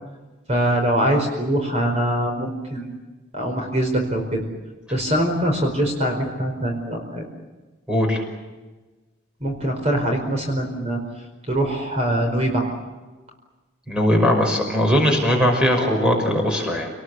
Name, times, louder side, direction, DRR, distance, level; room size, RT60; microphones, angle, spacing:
voice 1, 0.5-3.0 3.3-4.4 4.9-7.2 9.4-11.0 11.5-12.7, right 1 dB, 35° right, 3 dB, 4.8 m, -23 dB
voice 2, 7.9-8.2 13.9-16.9, equal, 5° right, 2 dB, 5.9 m, -19 dB
28.5 x 20.0 x 8.4 m, 1.2 s
head